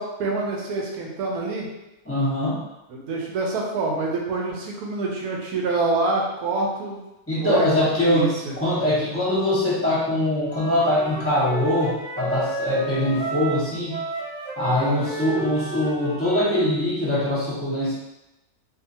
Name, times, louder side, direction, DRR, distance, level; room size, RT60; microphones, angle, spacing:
voice 1, 0.0-1.7 2.9-7.0 7.3-8.5 14.7-15.0, right 3 dB, 85° right, -1 dB, 1.1 m, -26 dB
voice 2, 2.0-2.6 7.3-8.3 8.6-14.0 14.6-18.0, left 1 dB, 15° left, -8 dB, 0.6 m, -22 dB
Wind instrument woodwind instrument, 10.4-16.7, right 3 dB, 65° right, 0.8 m, -32 dB
2.6 x 2.4 x 2.7 m, 0.96 s
omnidirectional pair, 1.6 m